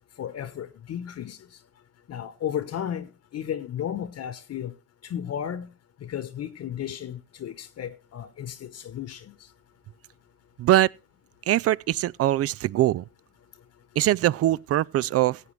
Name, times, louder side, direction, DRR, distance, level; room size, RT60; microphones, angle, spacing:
voice 1, 0.2-1.4 2.1-4.7 5.1-5.7 6.0-9.3, left 9 dB, 55° left, 1.2 m, -34 dB
voice 2, 10.6-10.9 11.5-13.0 14.0-15.4, right 14 dB, 50° right, 0.5 m, -22 dB
17.0 x 8.1 x 3.2 m
hypercardioid pair, 55°, 31 cm